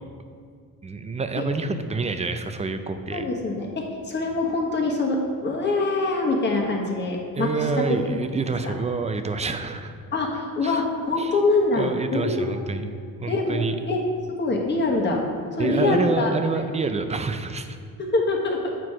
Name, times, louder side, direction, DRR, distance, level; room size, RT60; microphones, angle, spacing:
voice 1, 0.8-3.2 7.4-9.9 10.6-10.8 11.2-11.3 11.7-12.9 13.2-13.8 15.6-17.8, right 4 dB, 20° right, 8 dB, 0.4 m, -27 dB
voice 2, 3.1-7.5 8.4-8.7 10.1-12.9 13.3-14.0 14.4-15.2 15.6-16.3 18.0-18.6, left 3 dB, 30° left, 0 dB, 1.3 m, -24 dB
8.1 x 4.6 x 4.8 m, 2.1 s
cardioid pair, 115°, 34 cm